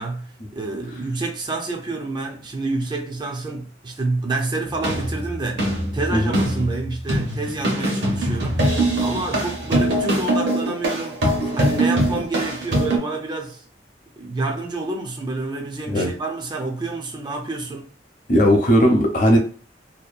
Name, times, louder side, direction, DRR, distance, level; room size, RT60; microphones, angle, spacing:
voice 1, 0.0-13.6 14.2-17.9, right 3 dB, 25° right, 0.4 m, -28 dB
sound 1, 4.7-13.0, right 1 dB, 75° right, 1.1 m, -22 dB
voice 2, 6.1-6.4 15.9-16.1 18.3-19.4, equal, 45° left, 0.7 m, -17 dB
2.7 x 2.2 x 2.4 m
head